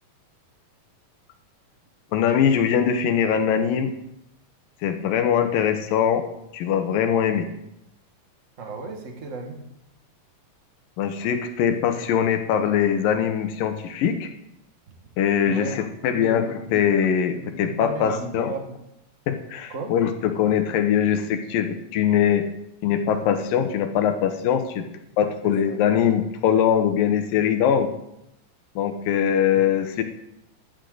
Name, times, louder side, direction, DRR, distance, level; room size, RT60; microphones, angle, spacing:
voice 1, 2.1-3.9 4.8-6.2 6.5-7.5 11.0-14.3 15.2-18.5 19.3-22.5 22.8-24.9 25.2-27.9 28.8-30.0, left 8 dB, 85° left, 7 dB, 2.8 m, -22 dB
voice 2, 8.6-9.6 15.4-15.8 16.1-16.8 17.3-18.8 19.7-19.9 24.5-24.6 25.4-25.8 29.5-29.7, right 3 dB, 30° right, 2 dB, 1.6 m, -35 dB
16.0 x 11.5 x 4.0 m, 0.82 s
omnidirectional pair, 3.9 m